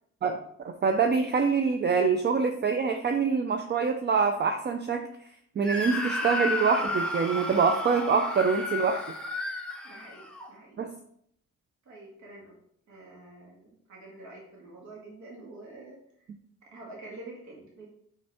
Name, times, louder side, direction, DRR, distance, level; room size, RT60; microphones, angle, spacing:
voice 1, 0.6-5.1 5.6-9.0 10.8-10.9, right 5 dB, 35° right, 6 dB, 0.5 m, -25 dB
Screaming, 5.6-10.5, left 1 dB, 5° left, 1.1 m, -32 dB
voice 2, 9.8-10.8 11.9-12.6 12.9-16.3 16.7-17.9, right 2 dB, 70° right, -3 dB, 2.0 m, -47 dB
5.2 x 5.1 x 3.5 m, 0.69 s
cardioid pair, 90°, 30 cm